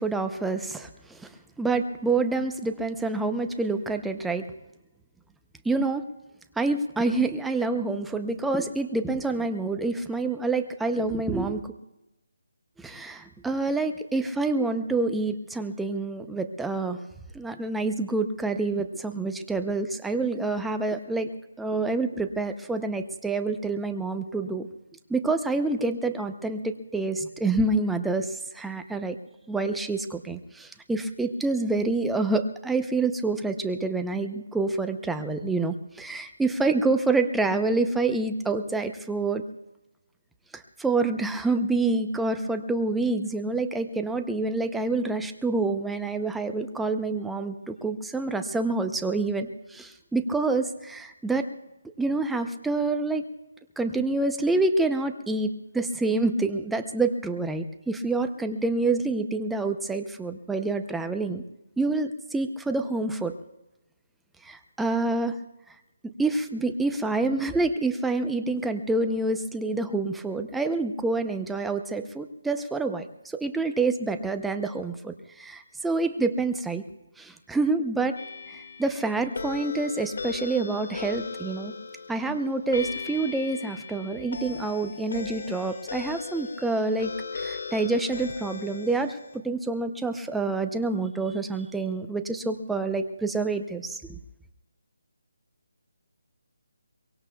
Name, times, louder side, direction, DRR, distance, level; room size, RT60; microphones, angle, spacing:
voice 1, 0.0-4.5 5.6-6.1 6.6-11.7 12.8-17.0 17.3-21.3 21.6-24.7 25.1-29.2 29.5-39.4 40.5-51.5 52.0-53.3 53.8-61.4 61.8-63.4 64.4-65.4 66.0-76.8 77.2-78.2 78.5-81.7 82.1-94.2, right 3 dB, 5° right, 7 dB, 0.7 m, -27 dB
sound 1, 78.2-89.4, left 5 dB, 65° left, 2.0 m, -38 dB
23.5 x 23.0 x 2.3 m, 0.97 s
figure-of-eight pair, 160°, 0 cm